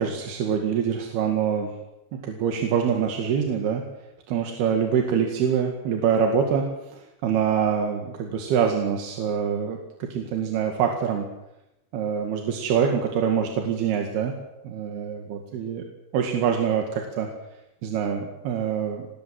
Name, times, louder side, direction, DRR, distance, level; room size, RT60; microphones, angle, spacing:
voice 1, 0.0-1.7 2.1-3.8 4.3-6.6 6.9-11.3 11.9-14.3 14.6-15.8 16.1-17.3 17.8-19.1, right 7 dB, 90° right, 3 dB, 4.1 m, -25 dB
25.0 x 20.0 x 7.7 m, 0.91 s
omnidirectional pair, 4.4 m